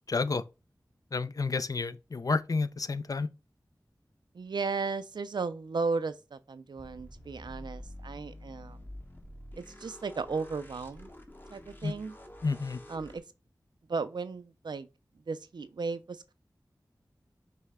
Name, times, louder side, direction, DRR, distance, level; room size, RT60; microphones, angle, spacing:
voice 1, 0.1-0.4 1.1-3.3 11.8-11.9 12.4-12.8, left 4 dB, 55° left, 0.4 m, -30 dB
voice 2, 4.3-8.8 9.6-11.1 11.5-12.1 12.9-13.2 13.9-14.9 15.3-16.3, right 4 dB, 75° right, 0.4 m, -35 dB
sound 1, 6.8-13.2, left 1 dB, 25° left, 0.8 m, -48 dB
5.5 x 2.1 x 3.5 m
wide cardioid pair, 45°, 8 cm